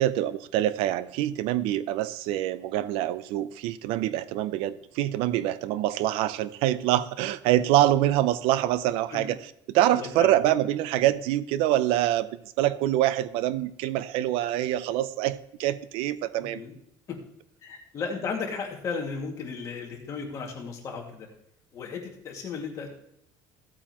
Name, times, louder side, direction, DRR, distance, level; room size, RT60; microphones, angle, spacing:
voice 1, 0.0-9.4 9.7-16.6, right 13 dB, 75° right, 16 dB, 0.5 m, -25 dB
voice 2, 9.9-10.3 16.4-16.7 17.1-17.2 17.6-21.3 21.7-22.9, left 5 dB, 35° left, 0 dB, 2.1 m, -35 dB
15.5 x 8.6 x 3.0 m, 0.74 s
cardioid pair, 170°, 10 cm